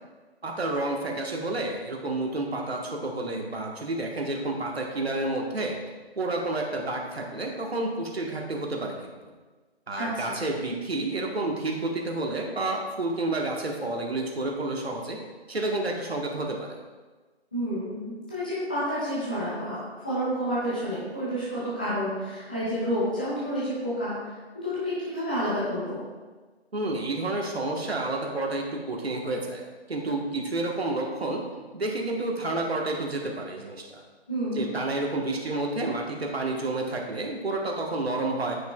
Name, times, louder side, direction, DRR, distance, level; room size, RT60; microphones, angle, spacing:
voice 1, 0.4-5.8 6.2-9.1 9.9-15.2 15.5-16.7 26.7-29.6 29.9-31.4 31.7-34.0 34.5-38.6, right 2 dB, 70° right, 0 dB, 1.3 m, -30 dB
voice 2, 10.0-10.4 17.5-24.2 24.5-26.0 34.3-34.6, equal, 10° left, -12 dB, 1.0 m, -29 dB
9.2 x 6.8 x 2.3 m, 1.3 s
figure-of-eight pair, 170°, 33 cm